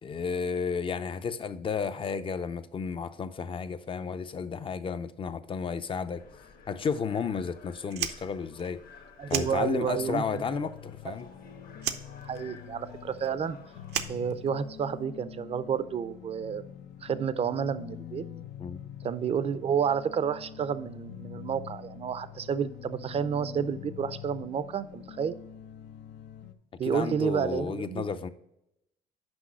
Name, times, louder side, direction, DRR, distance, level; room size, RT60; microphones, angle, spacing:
voice 1, 0.0-6.2 6.7-8.8 9.3-11.3 18.6-18.8 26.8-28.3, left 6 dB, 30° left, 0.5 m, -32 dB
sound 1, 6.1-14.1, left 5 dB, 60° left, 1.3 m, -53 dB
Fire, 7.8-10.2 10.4-11.4 11.8-14.9, right 10 dB, 75° right, 0.7 m, -36 dB
voice 2, 9.2-10.7 11.1-11.2 12.2-13.6 14.1-16.6 17.0-18.2 19.0-25.3 26.8-28.1, right 7 dB, 35° right, 0.5 m, -30 dB
sound 2, 9.3-26.5, left 10 dB, 75° left, 0.6 m, -45 dB
6.2 x 5.3 x 6.2 m
cardioid pair, 110°, 17 cm